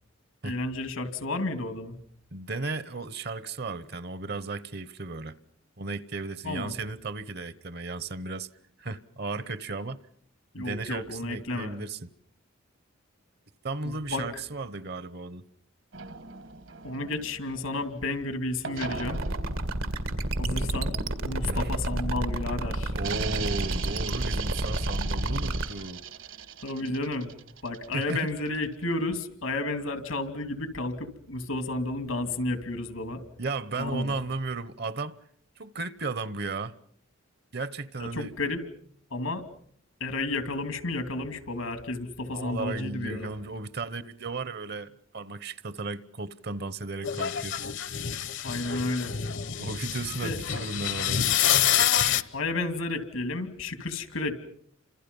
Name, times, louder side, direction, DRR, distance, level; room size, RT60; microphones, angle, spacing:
voice 1, 0.4-2.0 6.4-6.7 10.5-11.8 13.8-14.4 16.8-19.2 20.4-20.9 21.2-22.9 26.6-27.3 27.6-33.2 33.8-34.1 38.0-38.6 39.1-39.4 40.0-43.3 48.4-49.2 50.2-50.4 52.3-54.4, left 2 dB, 90° left, 2.8 m, -32 dB
voice 2, 2.3-5.4 5.8-8.5 8.8-10.0 10.6-12.1 13.6-15.4 21.5-21.7 22.9-26.0 27.9-28.3 33.4-35.2 35.6-36.7 37.5-38.3 42.3-47.7 49.6-51.3, right 3 dB, 50° right, 0.9 m, -35 dB
sound 1, 15.9-18.2 18.6-22.3 23.0-28.8, right 6 dB, 70° right, 1.7 m, -40 dB
sound 2, 18.9-25.7, right 1 dB, 85° right, 2.1 m, -30 dB
sound 3, 47.0-52.2, left 9 dB, 60° left, 1.0 m, -27 dB
30.0 x 26.0 x 5.4 m
head